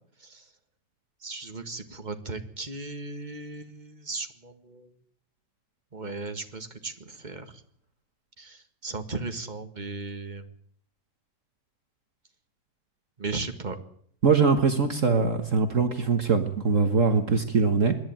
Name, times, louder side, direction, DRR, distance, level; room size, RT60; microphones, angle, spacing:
voice 1, 1.2-4.9 5.9-7.6 8.4-10.5 13.2-13.8, right 3 dB, 25° right, 7 dB, 2.0 m, -36 dB
voice 2, 14.2-17.9, right 5 dB, 50° right, 7 dB, 1.7 m, -22 dB
26.0 x 11.5 x 8.9 m, 0.64 s
omnidirectional pair, 1.8 m